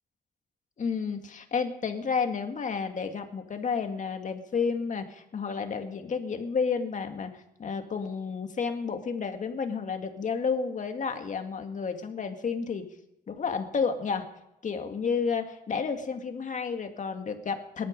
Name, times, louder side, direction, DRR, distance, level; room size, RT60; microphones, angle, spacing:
voice 1, 0.8-12.8 13.3-14.3 14.6-17.9, left 5 dB, 50° left, 6 dB, 2.1 m, -31 dB
18.0 x 12.5 x 5.3 m, 0.88 s
cardioid pair, 75°, 16 cm